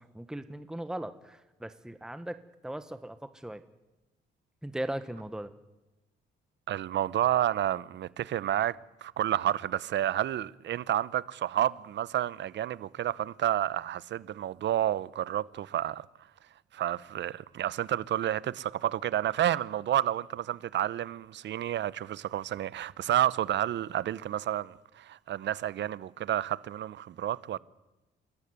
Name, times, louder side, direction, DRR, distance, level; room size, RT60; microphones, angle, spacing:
voice 1, 0.0-2.4 2.6-3.6 4.6-5.5, right 1 dB, 5° right, 1.3 m, -38 dB
voice 2, 6.7-16.1 16.7-27.6, right 11 dB, 65° right, 0.8 m, -30 dB
29.0 x 13.5 x 9.7 m
cardioid pair, 90°, 20 cm